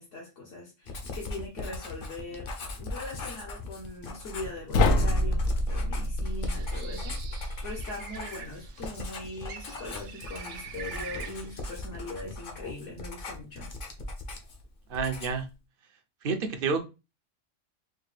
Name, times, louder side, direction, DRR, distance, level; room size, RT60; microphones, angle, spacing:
voice 1, 0.0-13.7, left 2 dB, 70° left, 1.2 m, -41 dB
Writing, 0.9-14.7 14.9-15.5, left 2 dB, 50° left, 0.8 m, -39 dB
sound 1, 4.7-7.8, left 1 dB, 90° left, 1.0 m, -27 dB
Bird, 6.3-11.8, right 7 dB, 80° right, 1.0 m, -45 dB
voice 2, 14.9-15.4 16.2-16.9, right 5 dB, 55° right, 0.6 m, -29 dB
4.5 x 2.1 x 3.2 m
omnidirectional pair, 1.3 m